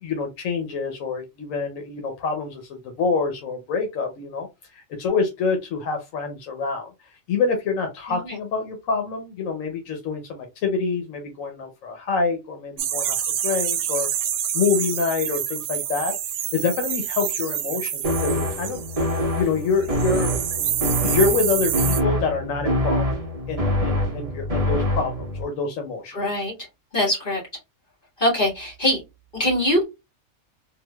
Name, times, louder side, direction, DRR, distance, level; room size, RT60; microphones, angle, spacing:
voice 1, 0.0-13.2 13.4-14.1 14.5-18.8 19.4-20.4 21.0-23.0 23.5-26.5, left 5 dB, 85° left, 4 dB, 1.1 m, -26 dB
sound 1, 12.8-19.5 19.7-22.0, right 10 dB, 90° right, 1.0 m, -27 dB
sound 2, 18.0-25.4, equal, 30° right, 1.0 m, -25 dB
voice 2, 26.1-26.5 26.9-27.4 28.2-29.0 29.3-29.8, left 1 dB, 40° left, -4 dB, 2.0 m, -22 dB
3.7 x 2.5 x 2.2 m, 0.23 s
omnidirectional pair, 1.3 m